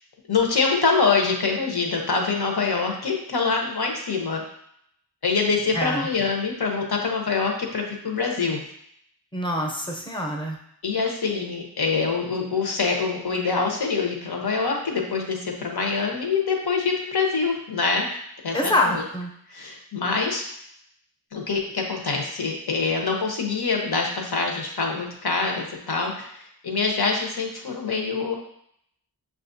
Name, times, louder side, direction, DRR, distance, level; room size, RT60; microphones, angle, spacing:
voice 1, 0.3-4.4 5.2-8.6 10.8-18.1 18.4-19.0 19.5-20.4 21.3-26.3 26.6-28.3, left 4 dB, 70° left, 0 dB, 0.9 m, -25 dB
voice 2, 5.7-6.1 9.3-10.6 18.5-19.3, left 1 dB, 10° left, 0 dB, 0.7 m, -25 dB
6.3 x 2.4 x 2.6 m, 0.71 s
wide cardioid pair, 50°, 39 cm